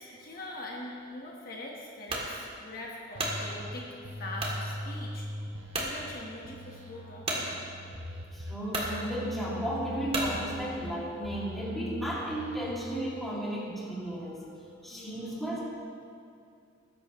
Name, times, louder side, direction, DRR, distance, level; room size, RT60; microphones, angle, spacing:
voice 1, 0.0-3.9 4.2-5.3 5.8-7.5 14.9-15.3, left 1 dB, 45° left, -2 dB, 1.3 m, -42 dB
sound 1, 2.1-2.3 2.9-3.4 4.4-4.6 5.2-5.3 5.7-5.9 7.3-7.4 8.2-8.3 8.7-8.9 10.1-10.4, right 2 dB, 30° right, 1.8 m, -32 dB
sound 2, 3.1-3.7 4.0-6.1 6.4-8.5 8.8-10.9 11.2-12.7, left 1 dB, 70° right, 1.3 m, -41 dB
voice 2, 8.3-14.4 14.8-15.6, right 1 dB, ahead, -7 dB, 2.5 m, -34 dB
20.0 x 10.5 x 3.1 m, 2.4 s
head